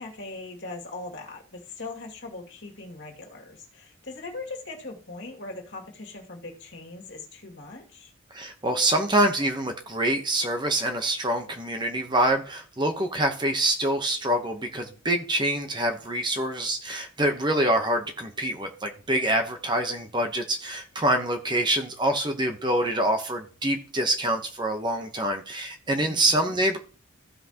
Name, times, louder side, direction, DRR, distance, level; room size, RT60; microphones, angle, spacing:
voice 1, 0.0-8.1 26.0-26.5, left 3 dB, 50° left, 0 dB, 2.4 m, -40 dB
voice 2, 8.3-26.8, right 1 dB, 20° right, 5 dB, 0.9 m, -25 dB
15.0 x 5.9 x 2.9 m, 0.38 s
head